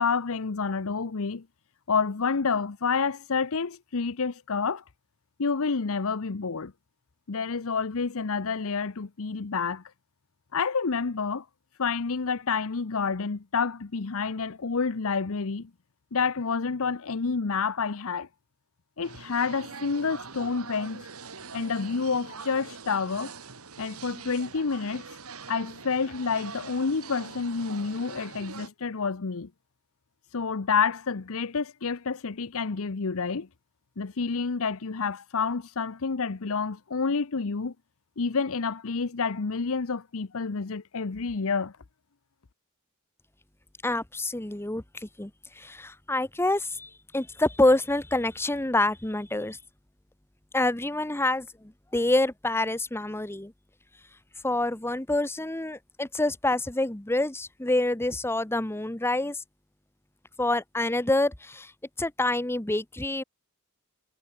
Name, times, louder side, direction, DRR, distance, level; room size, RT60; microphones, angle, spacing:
voice 1, 0.0-1.5 1.9-4.8 5.4-6.7 7.3-9.8 10.5-11.4 11.8-15.7 16.1-18.3 19.0-21.1 21.5-23.3 23.8-25.0 25.5-29.5 30.3-33.5 34.0-37.7 38.2-41.7, left 5 dB, 65° left, 0.8 m, -29 dB
sound 1, 19.0-28.7, right 5 dB, 70° right, 3.0 m, -43 dB
voice 2, 43.8-45.3 45.6-49.6 50.5-51.5 51.9-53.5 54.4-59.4 60.4-61.7 62.0-63.2, left 2 dB, 10° left, 1.0 m, -27 dB
head